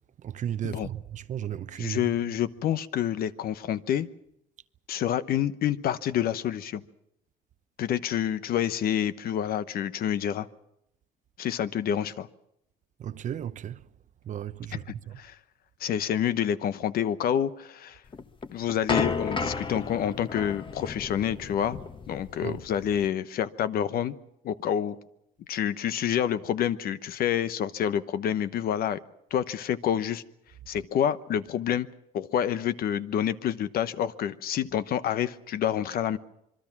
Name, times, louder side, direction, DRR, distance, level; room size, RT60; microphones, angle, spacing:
voice 1, 0.2-2.1 13.0-13.8 14.2-15.2 22.4-22.6, right 10 dB, 45° right, 0.8 m, -35 dB
voice 2, 1.8-4.1 4.9-6.8 7.8-10.5 11.4-12.3 15.2-15.4 15.8-18.0 18.5-21.8 22.1-24.1 24.4-25.0 25.5-29.0 29.3-30.2 30.7-31.9 32.1-36.2, left 10 dB, 60° left, 1.0 m, -28 dB
sound 1, 18.1-23.1, left 4 dB, 30° left, 1.3 m, -33 dB
26.0 x 22.5 x 6.0 m
cardioid pair, 110°, 17 cm